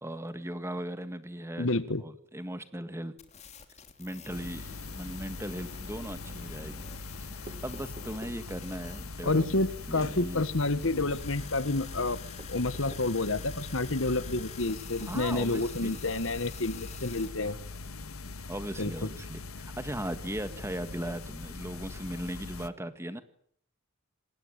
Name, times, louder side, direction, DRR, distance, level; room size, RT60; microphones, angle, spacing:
voice 1, 0.0-1.7 2.0-3.1 4.0-6.9 7.2-9.6 9.9-10.5 15.0-16.0 18.5-23.2, right 1 dB, 10° right, 10 dB, 1.8 m, -38 dB
voice 2, 1.6-2.0 9.2-12.2 12.5-17.6 18.8-18.9, left 2 dB, 65° left, 15 dB, 1.5 m, -29 dB
sound 1, 3.2-17.3, left 6 dB, 30° left, 3.0 m, -48 dB
sound 2, 4.3-22.7, left 3 dB, 80° left, 1.5 m, -42 dB
sound 3, 7.5-8.4 9.4-9.6 10.2-10.4 11.0-11.2 12.4-13.1 14.4-15.2, right 1 dB, 30° right, 1.9 m, -48 dB
27.5 x 20.0 x 9.8 m, 0.66 s
head